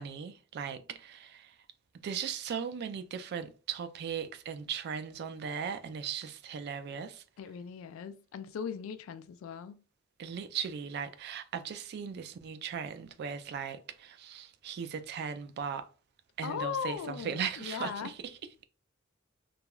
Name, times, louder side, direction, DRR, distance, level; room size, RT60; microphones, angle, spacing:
voice 1, 0.0-1.6 2.0-7.2 10.2-15.9 16.4-18.6, right 7 dB, 55° right, 0.3 m, -38 dB
voice 2, 7.4-9.8 16.4-18.1, left 7 dB, 85° left, 0.3 m, -38 dB
2.9 x 2.2 x 2.2 m
head